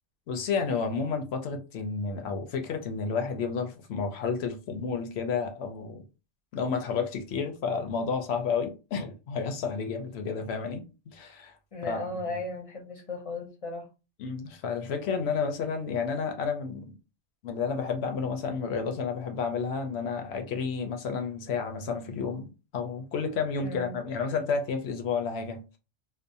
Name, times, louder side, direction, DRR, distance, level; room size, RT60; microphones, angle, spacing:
voice 1, 0.3-6.0 6.5-10.8 11.1-11.5 11.9-12.0 14.2-17.0 17.4-25.6, left 5 dB, 70° left, 0.8 m, -31 dB
voice 2, 11.7-13.9 23.6-24.0, left 2 dB, 40° left, 0.6 m, -36 dB
2.5 x 2.0 x 2.6 m
omnidirectional pair, 1.2 m